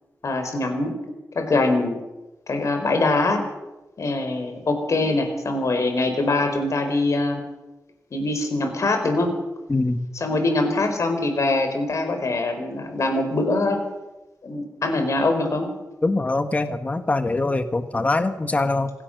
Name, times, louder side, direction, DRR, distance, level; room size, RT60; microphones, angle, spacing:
voice 1, 0.2-0.9 1.3-2.0 2.5-3.4 4.0-7.4 8.1-9.3 10.1-13.8 14.4-15.7, left 2 dB, 55° left, 6 dB, 4.6 m, -23 dB
voice 2, 9.7-10.0 16.0-18.9, left 2 dB, 25° left, 9 dB, 1.2 m, -23 dB
26.0 x 16.5 x 6.6 m, 1.0 s
wide cardioid pair, 160°, 6 cm